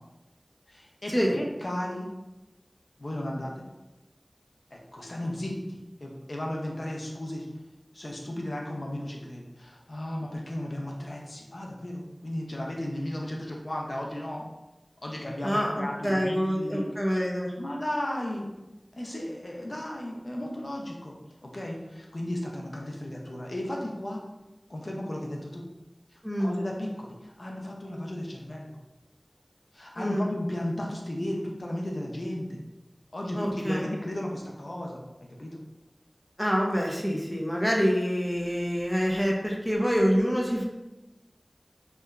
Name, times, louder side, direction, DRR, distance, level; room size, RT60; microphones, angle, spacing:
voice 1, 0.7-2.1 3.0-3.6 4.7-7.5 7.9-14.4 15.0-16.9 17.6-18.5 19.0-21.1 21.4-24.2 24.7-25.7 26.1-28.8 29.7-32.6 33.1-35.0 35.4-35.6, left 1 dB, 70° left, -1 dB, 0.4 m, -34 dB
voice 2, 15.4-17.5 26.2-26.5 30.0-30.2 33.3-33.8 36.4-40.7, equal, 5° left, -3 dB, 0.5 m, -26 dB
2.9 x 2.2 x 2.3 m, 1.0 s
wide cardioid pair, 50°, 0 cm